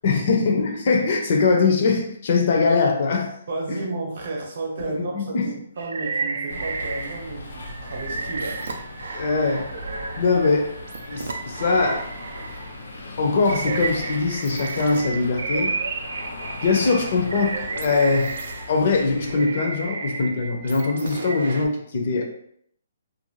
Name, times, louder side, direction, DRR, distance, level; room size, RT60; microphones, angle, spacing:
voice 1, 0.0-3.3 3.7-3.8 4.8-5.5 9.1-9.7 10.2-10.7 11.1-12.1 13.2-15.7 16.6-18.3 18.7-22.3, left 4 dB, 45° left, 2 dB, 0.5 m, -22 dB
voice 2, 3.5-8.7, right 2 dB, 50° right, 1 dB, 0.7 m, -32 dB
sound 1, 5.8-7.3 7.6-12.8 13.3-21.7, right 4 dB, 75° right, 0.4 m, -32 dB
sound 2, 6.5-19.4, left 2 dB, 90° left, 0.6 m, -38 dB
2.5 x 2.2 x 3.0 m, 0.67 s
hypercardioid pair, 165°, 0 cm